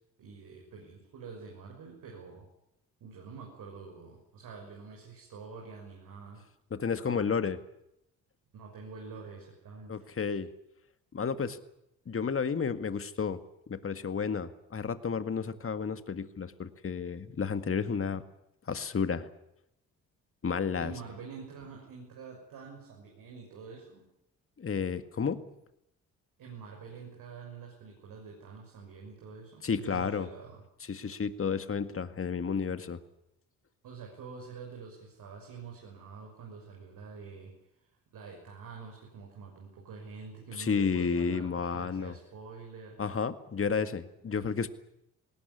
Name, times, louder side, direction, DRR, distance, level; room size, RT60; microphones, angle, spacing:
voice 1, 0.2-2.4 3.0-6.4 6.9-7.4 8.5-10.0 20.8-24.0 26.4-30.6 33.8-37.5 38.1-43.0 44.3-44.4, right 5 dB, 75° right, 0 dB, 6.4 m, -47 dB
voice 2, 6.7-7.6 9.9-10.5 11.1-11.6 12.1-13.4 13.7-18.2 18.7-19.3 20.4-20.9 24.6-25.4 29.6-30.3 30.8-33.0 40.5-42.1 43.0-44.7, left 6 dB, 40° left, 11 dB, 1.9 m, -31 dB
20.0 x 18.5 x 10.0 m, 0.80 s
supercardioid pair, 65°, 34 cm